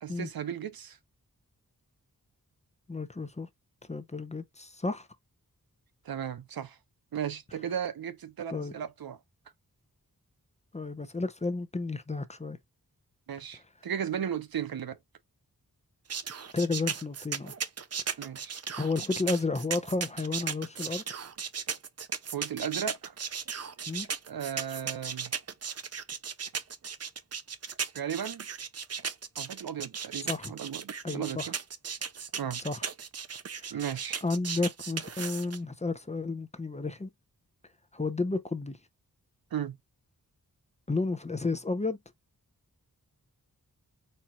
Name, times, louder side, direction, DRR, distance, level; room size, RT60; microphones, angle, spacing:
voice 1, 0.0-1.0 6.0-6.8 7.1-9.2 13.3-15.0 18.2-18.6 22.3-23.1 24.3-25.3 27.9-28.5 29.4-31.5 32.4-32.6 33.7-34.2 39.5-39.8, right 8 dB, 80° right, 0.7 m, -35 dB
voice 2, 2.9-3.5 3.9-5.1 8.5-8.7 10.7-12.6 16.5-17.5 18.8-21.0 23.9-24.1 30.3-30.5 31.0-31.5 32.6-32.8 33.6-33.8 34.2-37.1 37.9-38.8 40.9-42.0, left 3 dB, 20° left, 0.6 m, -32 dB
sound 1, 16.1-35.6, right 6 dB, 45° right, 0.5 m, -36 dB
4.4 x 2.4 x 4.2 m
wide cardioid pair, 105°, 35 cm